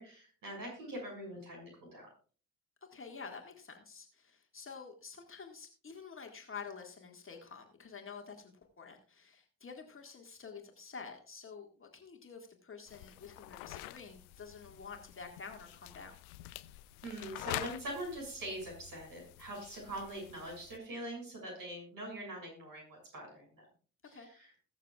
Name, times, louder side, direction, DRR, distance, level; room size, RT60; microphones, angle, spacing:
voice 1, 0.0-2.1 17.0-23.6 24.0-24.5, right 1 dB, 45° right, 0 dB, 6.5 m, -43 dB
voice 2, 2.9-16.2 24.1-24.3, left 5 dB, 25° left, 2 dB, 2.0 m, -49 dB
sound 1, 12.9-20.8, left 17 dB, 65° left, 0.7 m, -47 dB
21.0 x 6.9 x 2.4 m, 0.40 s
figure-of-eight pair, 50°, 45 cm